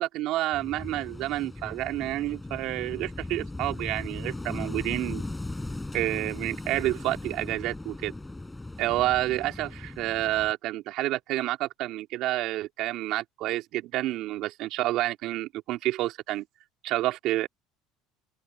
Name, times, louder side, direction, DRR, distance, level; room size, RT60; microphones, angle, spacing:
voice 1, 0.0-5.2 5.9-8.1 8.8-16.4 16.8-17.5, right 16 dB, 65° right, 2.6 m, -29 dB
Wind / Waves surf, 0.5-10.5, left 2 dB, 10° left, 7.9 m, -38 dB
open air
supercardioid pair, 100°, 0 cm